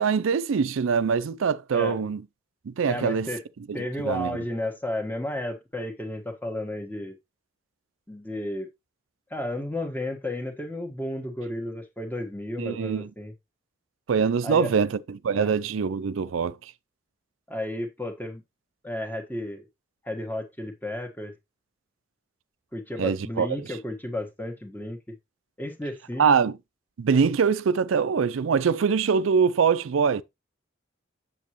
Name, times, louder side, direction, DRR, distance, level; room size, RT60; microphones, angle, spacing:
voice 1, 0.0-2.2 2.7-3.3 3.7-3.8 4.0-4.4 12.6-13.1 14.1-16.7 23.0-23.5 26.2-26.5 27.0-30.2, right 6 dB, 90° right, 0.4 m, -23 dB
voice 2, 2.8-3.4 3.7-7.2 8.1-8.7 9.3-13.3 14.4-14.7 15.3-15.5 17.5-18.4 18.8-19.7 20.0-21.3 22.7-25.1 25.6-26.3, left 1 dB, 10° left, 1.4 m, -33 dB
7.5 x 7.3 x 3.0 m
head